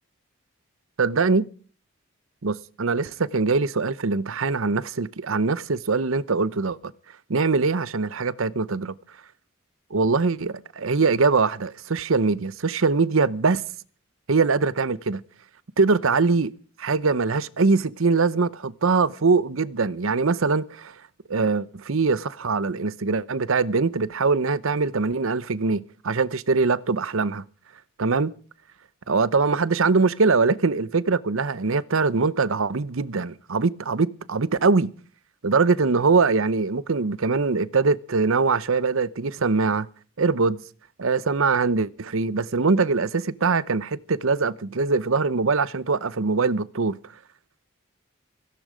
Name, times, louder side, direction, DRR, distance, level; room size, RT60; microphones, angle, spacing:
voice 1, 1.0-1.4 2.4-6.9 7.3-9.0 9.9-13.6 14.3-15.2 15.8-16.5 16.8-20.9 21.3-27.4 28.0-28.3 29.1-34.9 35.4-39.9 40.2-40.6 41.0-47.0, right 4 dB, 70° right, 0.7 m, -22 dB
17.0 x 16.0 x 5.0 m
head